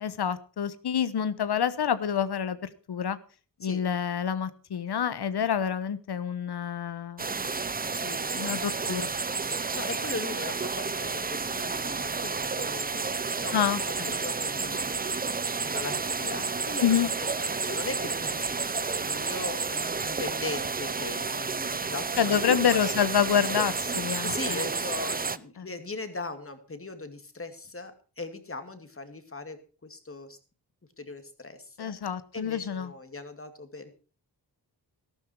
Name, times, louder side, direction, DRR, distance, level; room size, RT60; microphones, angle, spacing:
voice 1, 0.0-3.2 3.6-7.2 8.4-9.1 13.5-14.1 16.8-17.1 22.2-24.6 25.6-25.7 31.8-32.9, left 8 dB, 70° left, 14 dB, 1.1 m, -27 dB
sound 1, 7.2-25.4, right 4 dB, 20° right, 0.6 m, -31 dB
voice 2, 7.9-8.4 9.7-13.8 14.1-15.1 15.6-23.0 24.2-30.4 31.0-34.0, left 3 dB, 30° left, 8 dB, 2.4 m, -39 dB
13.5 x 12.5 x 4.6 m, 0.36 s
cardioid pair, 60°, 41 cm